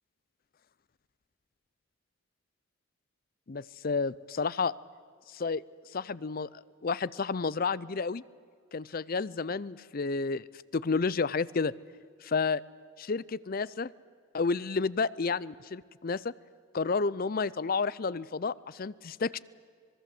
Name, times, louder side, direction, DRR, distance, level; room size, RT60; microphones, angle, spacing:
voice 1, 3.5-4.7 5.3-5.6 5.9-8.2 8.7-10.4 10.7-11.7 12.2-12.6 13.0-13.9 14.3-16.3 16.7-19.4, left 4 dB, 45° left, 20 dB, 0.5 m, -31 dB
26.0 x 21.5 x 7.7 m, 2.2 s
head